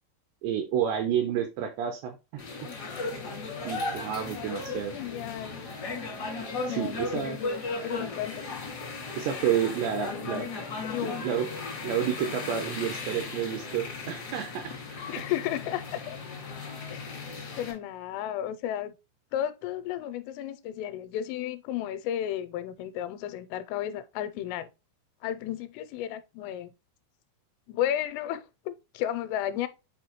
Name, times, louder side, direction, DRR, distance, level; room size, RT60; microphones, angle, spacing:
voice 1, 0.4-2.4 3.6-4.9 6.7-7.4 9.2-10.5 11.0-11.5 11.8-14.6, right 9 dB, 80° right, 2.6 m, -30 dB
sound 1, 2.4-17.7, left 3 dB, 70° left, 0.9 m, -36 dB
voice 2, 4.3-5.6 6.7-8.4 9.8-10.5 10.9-11.2 15.1-16.2 16.9-17.0 17.6-18.9 19.3-24.7 25.2-26.7 27.7-29.7, left 11 dB, 85° left, 3.1 m, -33 dB
8.3 x 4.3 x 3.0 m
omnidirectional pair, 5.7 m